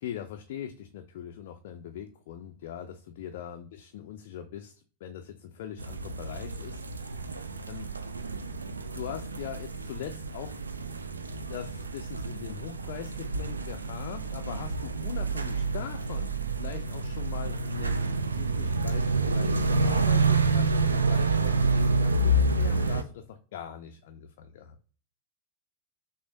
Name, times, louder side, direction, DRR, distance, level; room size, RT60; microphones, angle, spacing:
voice 1, 0.0-7.3 7.7-7.9 8.9-10.6 11.5-24.8, left 9 dB, 55° left, 5 dB, 0.4 m, -41 dB
sound 1, 5.8-23.0, right 3 dB, 75° right, 0.3 m, -28 dB
5.9 x 2.0 x 2.6 m, 0.41 s
figure-of-eight pair, 90°, 0 cm